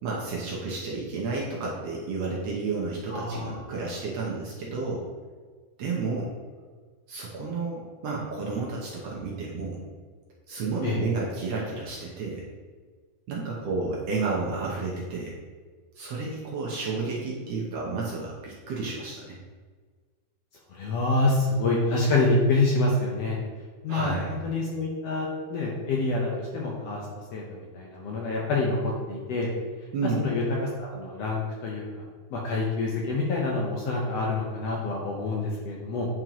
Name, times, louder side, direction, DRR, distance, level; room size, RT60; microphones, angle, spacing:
voice 1, 0.0-5.0 5.8-6.3 7.1-9.8 10.5-12.4 13.3-15.3 16.0-19.4 23.9-24.4 29.9-30.3, right 4 dB, 70° right, -4 dB, 1.7 m, -31 dB
voice 2, 3.1-3.7 10.8-11.0 20.7-23.4 23.8-27.0 27.3-29.5 30.2-30.4 30.8-31.8 32.3-36.1, left 2 dB, 70° left, -2 dB, 1.6 m, -27 dB
9.0 x 4.3 x 2.9 m, 1.5 s
omnidirectional pair, 3.6 m